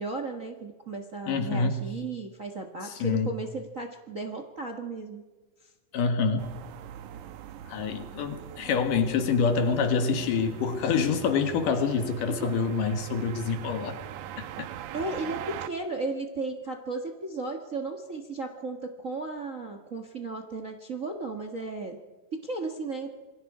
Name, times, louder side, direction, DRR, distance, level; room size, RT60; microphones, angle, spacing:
voice 1, 0.0-5.2 14.9-22.0 22.3-23.1, right 3 dB, 40° right, 5 dB, 1.2 m, -35 dB
voice 2, 1.3-1.8 2.8-3.3 5.9-6.5 7.7-14.0 14.4-14.5, left 5 dB, 85° left, 7 dB, 3.3 m, -26 dB
sound 1, 6.4-15.7, right 10 dB, 75° right, 2.3 m, -42 dB
27.5 x 22.0 x 4.9 m, 1.3 s
omnidirectional pair, 3.7 m